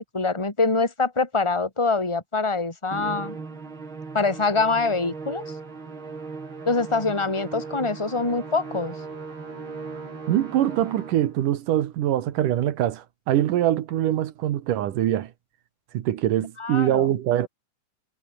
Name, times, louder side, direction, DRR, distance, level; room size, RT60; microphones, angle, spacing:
voice 1, 0.0-3.4 4.1-5.4 6.7-9.0 16.6-17.1, left 3 dB, 10° left, 3.6 m, -24 dB
Musical instrument, 2.9-11.4, right 4 dB, 40° right, 4.5 m, -38 dB
voice 2, 10.3-15.3 15.9-17.5, right 12 dB, 85° right, 3.0 m, -23 dB
omnidirectional pair, 3.6 m